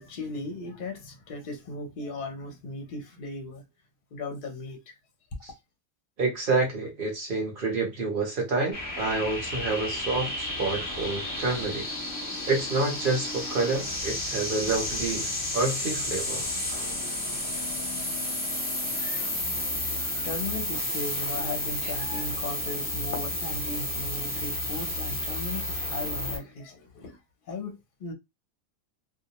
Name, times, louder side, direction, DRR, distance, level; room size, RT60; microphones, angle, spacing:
voice 1, 0.0-3.6 4.1-4.8 18.8-19.4 19.8-27.2 27.5-28.1, left 2 dB, 50° left, 0.7 m, -37 dB
voice 2, 6.2-11.9 12.5-16.4 21.8-21.9, right 3 dB, 50° right, 0.9 m, -28 dB
sound 1, 8.7-26.4, left 1 dB, 15° left, 0.9 m, -32 dB
2.3 x 2.0 x 2.8 m
omnidirectional pair, 1.3 m